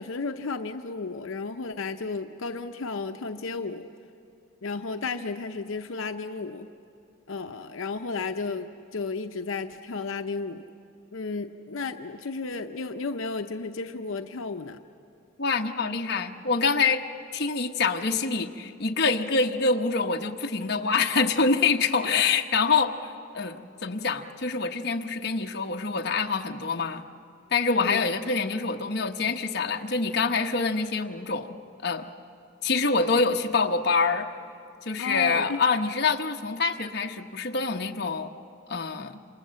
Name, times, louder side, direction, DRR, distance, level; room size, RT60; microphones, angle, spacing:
voice 1, 0.0-3.9 4.6-6.7 7.3-10.6 11.1-14.8 27.7-28.0 35.0-35.6, left 4 dB, 80° left, 6 dB, 0.7 m, -33 dB
voice 2, 15.4-17.0 17.3-27.0 27.5-32.1 32.6-34.3 34.8-38.4 38.7-39.2, left 4 dB, 50° left, 3 dB, 1.1 m, -26 dB
27.5 x 27.5 x 7.6 m, 2.6 s
head